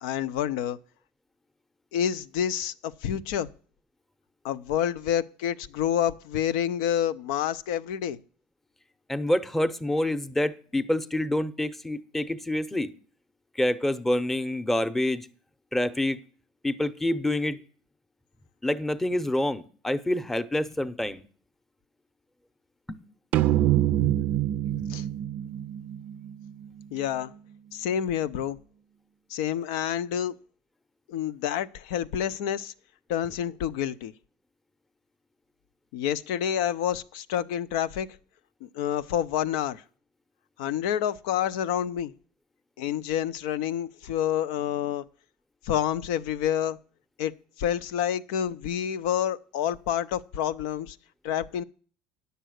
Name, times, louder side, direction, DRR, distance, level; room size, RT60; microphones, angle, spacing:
voice 1, 0.0-0.8 1.9-3.5 4.4-8.2 24.9-25.0 26.9-27.3 27.7-28.6 29.3-30.3 31.1-32.7 33.1-34.1 35.9-38.1 38.6-39.8 40.6-42.1 42.8-45.0 45.6-46.8 47.2-51.0 51.2-51.6, left 10 dB, 85° left, 0.5 m, -28 dB
voice 2, 9.1-12.9 13.6-15.3 15.7-16.2 16.6-17.6 18.6-21.2 22.9-23.0 23.9-24.2 24.8-24.9, left 1 dB, 5° left, 0.7 m, -27 dB
sound 1, 23.3-26.8, right 13 dB, 55° right, 0.4 m, -26 dB
10.0 x 6.8 x 6.3 m
supercardioid pair, 115°, 3 cm